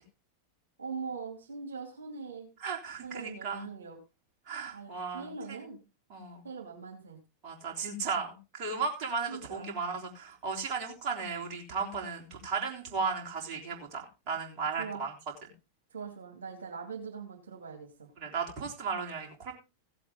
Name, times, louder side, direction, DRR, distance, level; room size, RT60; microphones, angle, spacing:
voice 1, 0.8-2.5 3.0-4.0 4.7-5.8 6.4-7.2 9.3-9.8 14.8-15.1 15.9-18.1, right 5 dB, 70° right, 1 dB, 2.6 m, -42 dB
voice 2, 2.6-3.7 4.5-5.6 6.1-6.4 7.4-15.1 18.2-19.5, right 5 dB, 40° right, 0 dB, 3.5 m, -35 dB
16.5 x 7.7 x 3.7 m, 0.28 s
figure-of-eight pair, 90°, 0 cm